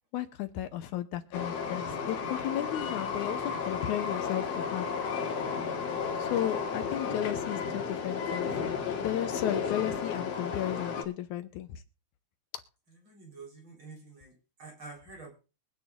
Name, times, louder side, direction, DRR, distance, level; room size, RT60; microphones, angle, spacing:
voice 1, 0.1-4.9 6.2-8.5 9.0-11.8, left 12 dB, 75° left, 9 dB, 2.1 m, -34 dB
Train, 1.3-11.0, left 6 dB, 60° left, 2.7 m, -33 dB
voice 2, 13.1-14.3 14.6-15.3, right 3 dB, 40° right, 0 dB, 4.8 m, -47 dB
23.0 x 9.8 x 2.5 m, 0.32 s
omnidirectional pair, 3.7 m